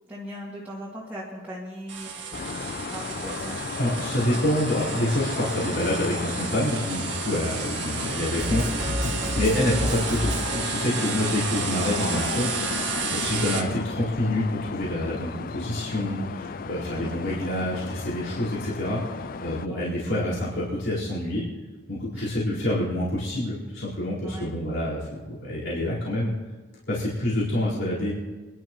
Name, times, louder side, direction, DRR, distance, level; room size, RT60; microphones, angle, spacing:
voice 1, 0.1-2.3 2.9-3.6 17.0-17.2 19.7-19.9 22.1-22.4 24.2-24.5, equal, 10° right, -7 dB, 2.1 m, -39 dB
sound 1, 1.9-13.6, right 6 dB, 60° right, 1.8 m, -32 dB
sound 2, 2.3-19.7, left 5 dB, 45° left, 0.4 m, -34 dB
voice 2, 3.8-8.9 9.3-21.4 21.9-26.3 26.9-28.1, left 1 dB, 65° left, -9 dB, 4.5 m, -27 dB
sound 3, 8.4-11.0, equal, 35° right, 2.3 m, -30 dB
26.5 x 11.5 x 3.1 m, 1.4 s
head